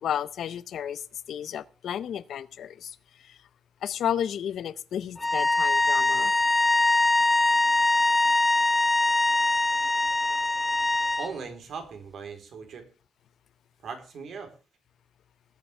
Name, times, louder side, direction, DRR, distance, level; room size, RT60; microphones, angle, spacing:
voice 1, 0.0-1.0 1.3-3.4 3.8-6.3, left 9 dB, 60° left, 0.7 m, -32 dB
sound 1, 5.2-11.3, left 2 dB, 10° left, 0.5 m, -23 dB
voice 2, 11.2-12.9 13.8-14.5, right 5 dB, 55° right, 3.8 m, -39 dB
20.0 x 9.7 x 3.3 m
cardioid pair, 175°, 0 cm